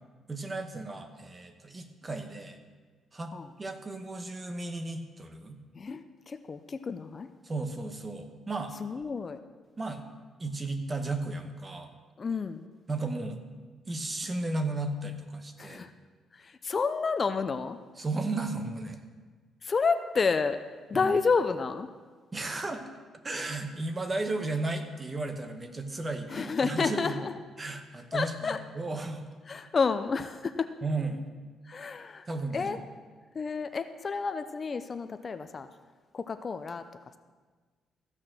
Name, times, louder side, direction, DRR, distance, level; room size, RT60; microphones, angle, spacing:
voice 1, 0.3-2.6 3.1-3.3 3.6-5.6 7.4-8.8 9.8-10.0 10.4-11.9 12.9-13.4 13.9-15.9 18.0-19.0 20.9-21.1 22.3-22.8 23.2-27.3 27.6-29.3 30.8-31.2 32.3-32.8, right 2 dB, 30° right, 7 dB, 1.2 m, -34 dB
voice 2, 5.7-7.3 8.8-9.4 12.2-12.7 15.6-15.9 16.3-17.8 19.6-20.6 20.9-21.9 26.3-27.3 28.1-28.6 29.5-30.7 31.7-32.3 32.5-32.8 33.3-35.7 36.1-36.8, left 5 dB, 40° left, 10 dB, 0.6 m, -30 dB
14.5 x 6.5 x 6.1 m, 1.4 s
cardioid pair, 90°, 0 cm